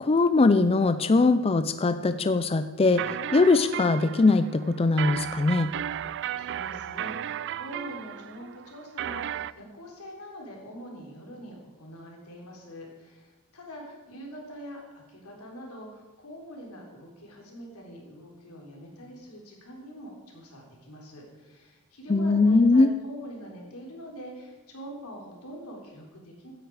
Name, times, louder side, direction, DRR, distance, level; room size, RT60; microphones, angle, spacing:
voice 1, 0.0-5.7 22.1-22.9, left 3 dB, 25° left, 11 dB, 0.4 m, -21 dB
sound 1, 2.8-9.5, right 10 dB, 55° right, 0.3 m, -35 dB
voice 2, 5.9-26.5, equal, 90° left, 0 dB, 3.6 m, -44 dB
16.0 x 10.0 x 4.8 m, 1.2 s
head